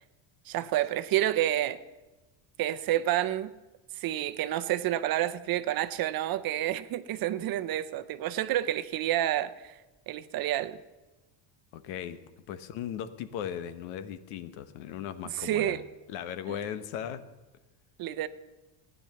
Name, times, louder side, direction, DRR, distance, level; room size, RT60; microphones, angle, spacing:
voice 1, 0.5-1.8 2.6-3.5 4.0-9.7 10.1-10.8 15.3-15.8 18.0-18.3, right 13 dB, 45° right, 0.7 m, -29 dB
voice 2, 11.7-12.2 12.5-15.8 16.1-17.2, left 9 dB, 85° left, 1.2 m, -37 dB
15.5 x 10.0 x 6.9 m
cardioid pair, 145°, 49 cm